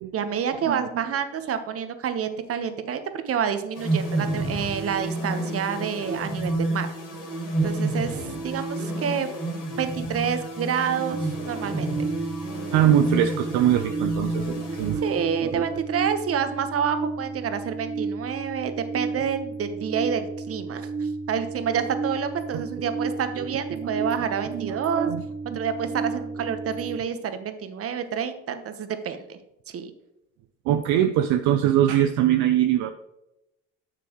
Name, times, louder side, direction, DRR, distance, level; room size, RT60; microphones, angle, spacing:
voice 1, 0.1-6.9 7.6-9.3 9.8-11.9 15.0-25.1 25.5-29.4 29.7-29.9, right 7 dB, 40° right, 9 dB, 1.2 m, -28 dB
sound 1, 3.7-15.6, right 2 dB, 75° left, 3.3 m, -30 dB
sound 2, 11.1-27.0, right 4 dB, 25° right, 0.8 m, -33 dB
voice 2, 12.7-15.0 15.4-15.6 19.2-19.3 22.5-22.6 23.4-23.5 23.8-23.9 24.5-25.2 25.5-25.6 30.7-32.9, right 11 dB, 60° right, 8 dB, 0.7 m, -22 dB
9.9 x 6.7 x 3.1 m, 0.89 s
hypercardioid pair, 70°, 34 cm